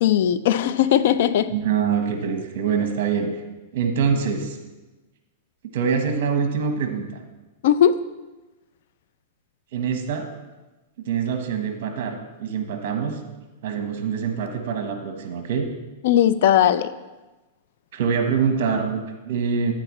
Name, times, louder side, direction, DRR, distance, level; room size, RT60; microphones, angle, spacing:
voice 1, 0.0-1.5 7.6-8.0 16.0-16.9, left 10 dB, 55° left, 14 dB, 0.4 m, -18 dB
voice 2, 1.5-3.3 3.7-4.6 5.7-7.1 9.7-10.3 11.0-13.2 13.6-15.7 17.9-19.7, right 6 dB, 55° right, 5 dB, 1.2 m, -24 dB
9.1 x 8.9 x 3.1 m, 1.1 s
supercardioid pair, 160°, 0 cm